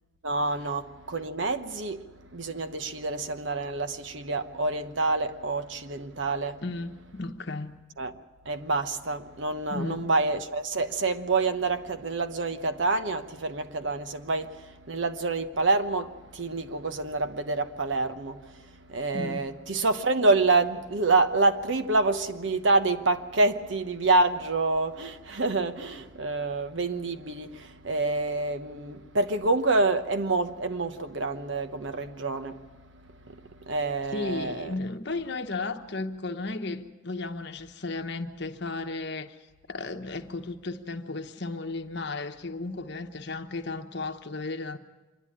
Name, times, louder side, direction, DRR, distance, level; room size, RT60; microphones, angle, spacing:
voice 1, 0.2-2.0 2.3-6.6 8.0-8.1 8.4-32.6 33.2-34.7, right 3 dB, 70° right, 1.0 m, -27 dB
voice 2, 6.6-7.8 9.7-10.1 19.1-19.5 34.1-39.4 39.7-44.8, left 3 dB, 60° left, 1.1 m, -34 dB
26.0 x 11.0 x 9.9 m
head